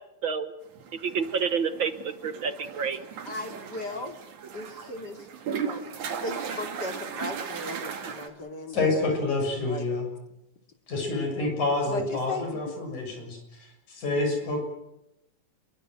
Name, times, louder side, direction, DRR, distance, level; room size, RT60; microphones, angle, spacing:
sound 1, 0.8-8.3, right 7 dB, 90° right, 3.8 m, -37 dB
voice 1, 1.0-3.0, right 6 dB, 55° right, 11 dB, 1.6 m, -28 dB
voice 2, 3.3-4.1 4.5-5.2 5.5-5.8 6.2-8.9 9.7-9.9 11.9-12.8, left 2 dB, 35° left, 5 dB, 3.2 m, -36 dB
voice 3, 8.7-10.1 10.9-14.7, left 2 dB, 85° left, 3 dB, 8.3 m, -28 dB
29.0 x 23.0 x 7.8 m, 0.88 s
omnidirectional pair, 3.3 m